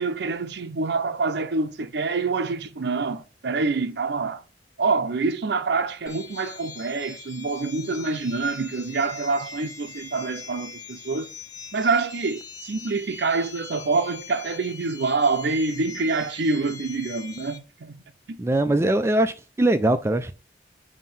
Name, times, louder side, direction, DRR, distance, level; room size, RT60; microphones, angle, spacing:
voice 1, 0.0-4.4 4.8-11.3 11.7-18.0, right 4 dB, 65° right, 0.5 m, -26 dB
sound 1, 6.1-17.6, left 5 dB, 20° left, 0.8 m, -42 dB
voice 2, 18.4-20.3, right 1 dB, 15° right, 0.3 m, -21 dB
7.3 x 2.8 x 5.4 m
head